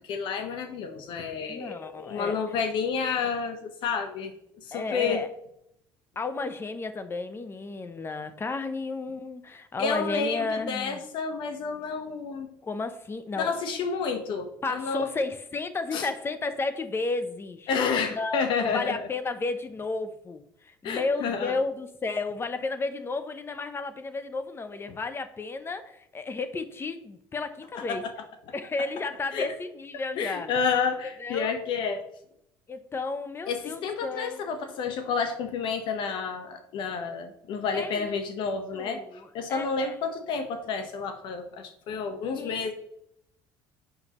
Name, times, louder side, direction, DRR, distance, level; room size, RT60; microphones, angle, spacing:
voice 1, 0.1-4.3 4.6-5.2 9.8-12.5 13.4-15.1 15.9-16.1 17.7-19.1 20.8-21.6 27.7-28.1 29.3-29.5 30.2-32.0 33.5-42.7, left 5 dB, 70° left, 7 dB, 1.1 m, -30 dB
voice 2, 1.5-2.4 4.7-5.3 6.2-11.0 12.6-13.5 14.6-17.7 18.1-28.0 28.5-30.5 31.2-31.5 32.7-34.4 37.7-38.2 38.7-39.9 42.3-42.7, left 3 dB, 25° left, 11 dB, 0.7 m, -33 dB
7.9 x 5.5 x 3.0 m, 0.75 s
supercardioid pair, 90°, 9 cm